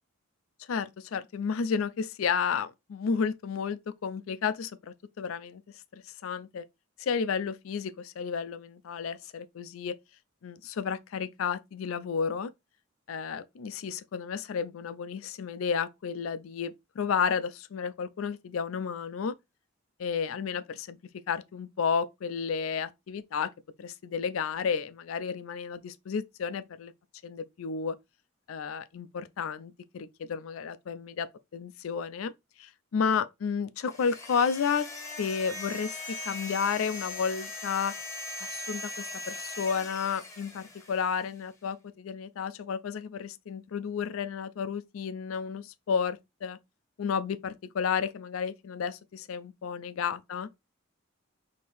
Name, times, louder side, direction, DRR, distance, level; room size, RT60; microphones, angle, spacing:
voice 1, 0.7-5.6 5.9-6.6 7.0-10.0 10.4-12.5 13.1-19.3 20.0-21.0 21.3-23.5 23.8-26.9 27.2-27.9 28.5-31.3 31.5-32.3 32.6-34.9 35.2-37.9 38.4-46.6 47.0-50.5, left 6 dB, 85° left, 0.4 m, -32 dB
sound 1, 33.9-41.2, left 2 dB, 15° left, 0.9 m, -40 dB
4.3 x 2.8 x 3.3 m
head